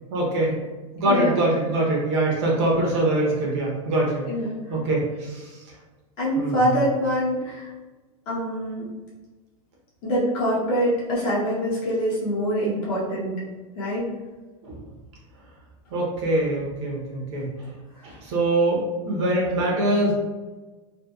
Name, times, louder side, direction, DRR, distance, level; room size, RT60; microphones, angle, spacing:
voice 1, 0.1-0.6 0.9-4.3 4.7-5.6 6.4-6.8 14.6-14.8 15.9-17.5 18.0-20.1, right 1 dB, 50° right, -3 dB, 0.7 m, -23 dB
voice 2, 1.0-1.4 4.3-4.6 6.2-7.7 8.3-8.8 10.0-13.4 13.8-14.0, equal, 30° left, -6 dB, 0.6 m, -24 dB
2.6 x 2.2 x 2.2 m, 1.2 s
supercardioid pair, 175°, 19 cm